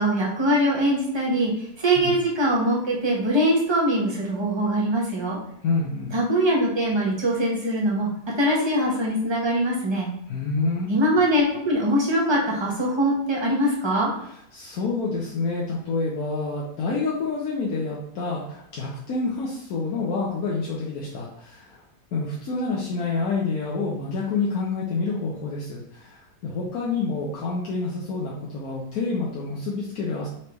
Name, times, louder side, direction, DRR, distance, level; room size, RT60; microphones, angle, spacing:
voice 1, 0.0-5.4 6.1-8.1 8.4-10.1 10.9-14.1, right 1 dB, 20° right, -3 dB, 0.9 m, -22 dB
voice 2, 5.6-6.1 10.3-10.9 14.5-21.8 22.1-30.3, left 3 dB, 80° left, -4 dB, 1.2 m, -28 dB
4.5 x 3.3 x 3.0 m, 0.73 s
omnidirectional pair, 1.5 m